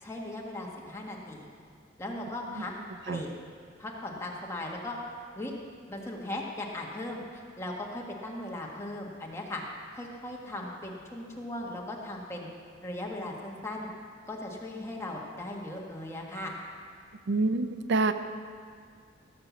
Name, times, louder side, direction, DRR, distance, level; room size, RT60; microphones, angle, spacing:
voice 1, 0.0-1.5 2.0-2.7 3.1-3.3 3.8-5.0 5.4-5.5 5.9-9.6 9.9-12.5 12.8-13.9 14.2-16.5, left 1 dB, 15° left, -2 dB, 1.6 m, -38 dB
voice 2, 17.3-18.1, right 3 dB, 65° right, 10 dB, 0.5 m, -26 dB
16.5 x 6.8 x 7.1 m, 2.1 s
head